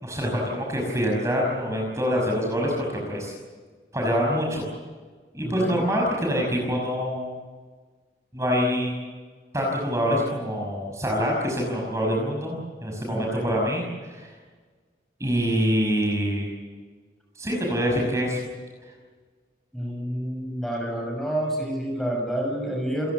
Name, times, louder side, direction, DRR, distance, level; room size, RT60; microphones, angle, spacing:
voice 1, 0.0-3.3 3.9-4.7 5.3-7.3 8.3-8.9 9.5-14.3 15.2-16.5 17.4-18.4, equal, 15° right, -1 dB, 5.8 m, -25 dB
voice 2, 5.4-5.8 13.1-13.5 19.7-23.1, right 1 dB, ahead, 0 dB, 6.6 m, -29 dB
29.5 x 16.5 x 8.4 m, 1.5 s
head